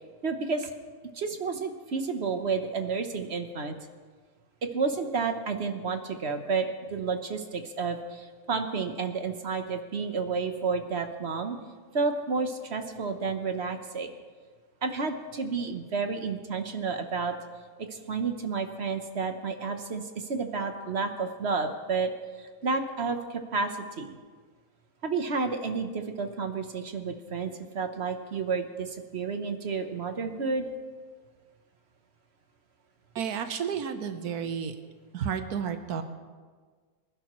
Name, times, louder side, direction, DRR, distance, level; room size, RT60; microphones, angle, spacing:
voice 1, 0.2-0.7 1.1-3.8 4.6-11.6 11.9-14.1 14.8-17.4 17.8-22.1 22.4-24.2 25.0-30.7, right 4 dB, 50° right, 6 dB, 1.1 m, -31 dB
voice 2, 33.1-34.7 35.1-36.0, right 7 dB, 85° right, 7 dB, 1.4 m, -31 dB
24.5 x 11.5 x 3.1 m, 1.5 s
omnidirectional pair, 1.6 m